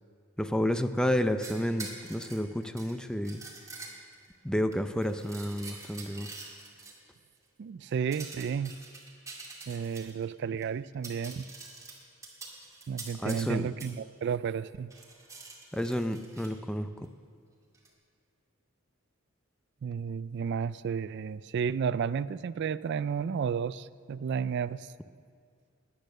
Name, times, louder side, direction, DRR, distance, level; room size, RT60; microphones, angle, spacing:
voice 1, 0.4-3.4 4.4-6.3 13.2-13.7 15.7-17.1, equal, 5° left, 9 dB, 0.5 m, -30 dB
sound 1, 1.4-4.3 4.7-6.9 8.1-10.2 10.6-10.7 10.9-13.5 13.8-13.9 14.9-16.5 17.7-17.9, right 3 dB, 15° right, 2.4 m, -45 dB
voice 2, 7.6-8.7 9.7-11.5 12.9-14.9 19.8-24.9, right 7 dB, 55° right, 17 dB, 0.3 m, -32 dB
18.5 x 10.5 x 6.6 m, 2.2 s
head